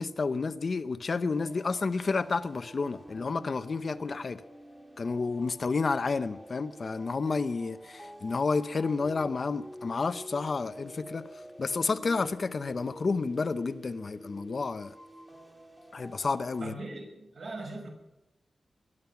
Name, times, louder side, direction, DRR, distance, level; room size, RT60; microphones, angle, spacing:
voice 1, 0.0-4.4 5.0-11.3 11.6-14.9 15.9-16.7, left 4 dB, 45° left, 0.7 m, -30 dB
sound 1, 1.3-16.6, equal, 10° right, 1.9 m, -48 dB
voice 2, 16.6-17.9, right 2 dB, 60° right, 5.8 m, -40 dB
22.0 x 11.0 x 5.9 m
wide cardioid pair, 175°, 0 cm